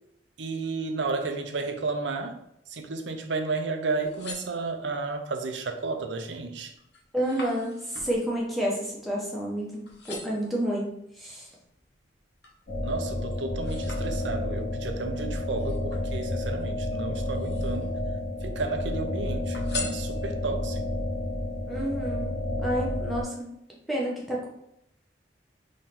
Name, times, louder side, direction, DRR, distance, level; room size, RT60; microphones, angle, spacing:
voice 1, 0.4-2.4 2.7-6.7 12.8-18.0 18.4-21.0, right 3 dB, 85° right, 6 dB, 0.6 m, -32 dB
sound 1, 4.0-5.1 5.7-6.1 6.4-9.6 9.8-10.6 11.2-12.7 13.1-14.6 15.5-16.6 17.2-18.0 18.3-19.0 19.5-20.6 21.1-21.2, left 4 dB, 70° left, 1.0 m, -43 dB
voice 2, 7.1-10.9 11.2-11.5 21.7-22.3 22.6-23.5 23.9-24.5, right 1 dB, ahead, -5 dB, 1.0 m, -29 dB
sound 2, 12.7-23.2, left 1 dB, 35° left, 1.6 m, -31 dB
3.8 x 3.1 x 4.2 m, 0.79 s
head